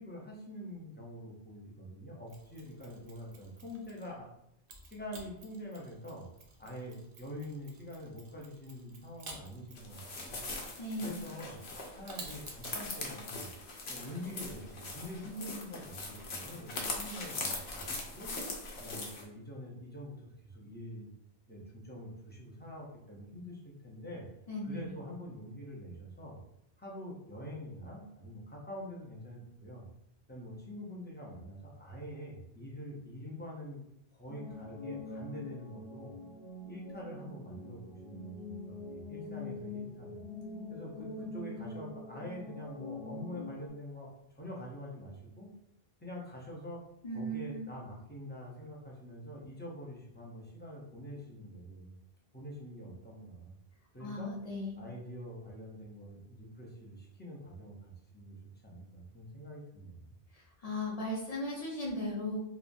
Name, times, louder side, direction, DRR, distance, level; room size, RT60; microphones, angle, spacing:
voice 1, 0.0-4.3 4.8-6.3 6.6-10.5 11.0-11.6 11.9-13.5 13.9-18.3 18.8-20.2 20.4-21.1 21.5-24.2 24.6-26.4 26.8-29.8 30.3-33.8 34.1-36.1 36.7-40.2 40.7-45.5 46.0-46.8 47.1-51.9 52.3-53.5 53.9-54.4 54.8-58.4 58.6-60.1, equal, 15° left, -4 dB, 0.4 m, -45 dB
Mechanisms, 2.3-4.2 4.7-12.8, right 3 dB, 65° right, 0.7 m, -53 dB
sound 1, 9.8-19.2, left 3 dB, 85° left, 0.9 m, -41 dB
voice 2, 10.8-11.2 24.5-24.9 47.0-47.6 54.0-54.8 60.3-62.4, left 1 dB, 45° left, -4 dB, 0.7 m, -37 dB
sound 2, 34.3-43.7, left 2 dB, 60° left, 1.0 m, -44 dB
3.0 x 2.2 x 2.5 m, 0.78 s
omnidirectional pair, 1.0 m